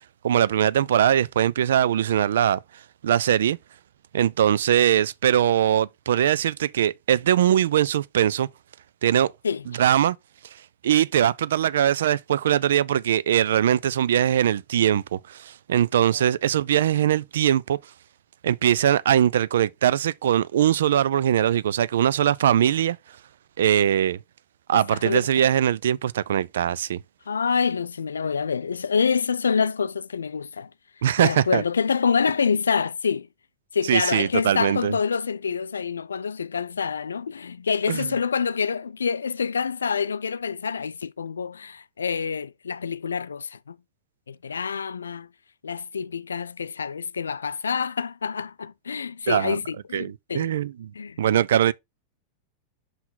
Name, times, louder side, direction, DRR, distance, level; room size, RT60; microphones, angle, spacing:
voice 1, 0.2-2.6 3.0-3.6 4.1-8.5 9.0-9.3 9.8-10.2 10.8-17.8 18.4-23.0 23.6-24.2 24.7-27.0 31.0-31.6 33.9-34.9 37.9-38.1 49.3-49.6 49.9-50.9 51.2-51.7, right 10 dB, 60° right, 0.3 m, -21 dB
voice 2, 24.7-25.4 27.3-30.7 31.2-33.3 33.7-43.8 44.3-45.3 45.6-50.5 50.9-51.2, left 6 dB, 70° left, 0.4 m, -27 dB
5.6 x 5.6 x 4.0 m
figure-of-eight pair, 90°, 0 cm